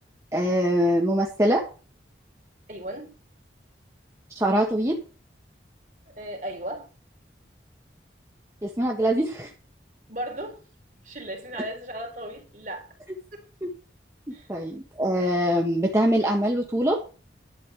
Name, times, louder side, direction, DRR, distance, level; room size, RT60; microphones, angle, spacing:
voice 1, 0.3-1.6 4.3-5.0 8.6-9.5 13.6-13.7 14.5-17.0, equal, 15° right, 1.4 m, -23 dB
voice 2, 2.7-3.1 6.0-6.9 10.1-10.6 11.0-12.9 13.3-13.5 14.3-14.5, right 1 dB, 45° right, 3.8 m, -36 dB
11.5 x 5.3 x 8.5 m
head